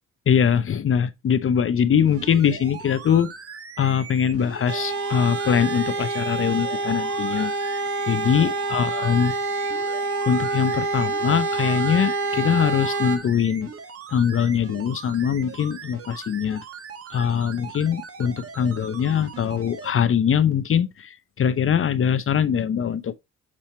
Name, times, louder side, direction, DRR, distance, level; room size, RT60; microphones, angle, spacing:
voice 1, 0.3-3.3 3.8-7.5 8.1-9.3 10.3-13.7 14.1-16.6 17.1-23.1, left 8 dB, 45° left, 0.7 m, -22 dB
sound 1, 2.0-19.9 20.5-20.6, right 6 dB, 50° right, 1.7 m, -40 dB
sound 2, 4.7-13.2, right 3 dB, 75° right, 2.2 m, -27 dB
7.6 x 4.3 x 4.3 m
cardioid pair, 90°, 30 cm